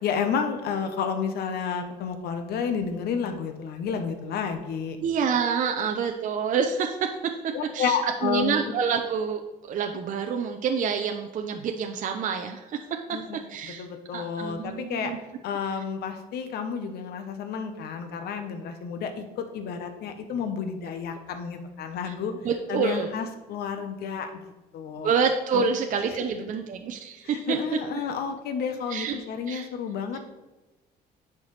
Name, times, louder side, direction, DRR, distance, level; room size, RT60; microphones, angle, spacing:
voice 1, 0.0-5.0 7.5-8.6 13.1-15.1 15.4-22.3 22.7-24.4 24.7-25.1 25.5-25.7 27.2-30.2, left 6 dB, 70° left, 7 dB, 0.9 m, -31 dB
voice 2, 5.0-7.1 7.7-9.4 9.7-13.2 13.5-13.9 14.1-15.2 22.1-22.2 22.4-23.1 25.0-27.6 28.9-29.2 29.5-29.7, right 6 dB, 50° right, 4 dB, 0.6 m, -27 dB
10.5 x 4.6 x 3.3 m, 1.1 s
cardioid pair, 110°, 17 cm